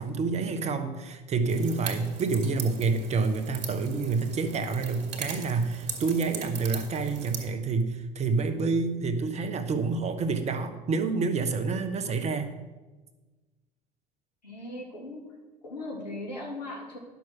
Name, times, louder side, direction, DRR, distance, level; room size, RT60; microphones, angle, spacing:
voice 1, 0.0-12.5, right 4 dB, 30° right, 8 dB, 1.1 m, -28 dB
sound 1, 1.5-7.4, right 6 dB, 60° right, 1.9 m, -40 dB
voice 2, 14.4-15.3 15.6-17.0, left 2 dB, 80° left, -2 dB, 2.5 m, -38 dB
10.5 x 6.2 x 6.1 m, 1.2 s
figure-of-eight pair, 70°, 21 cm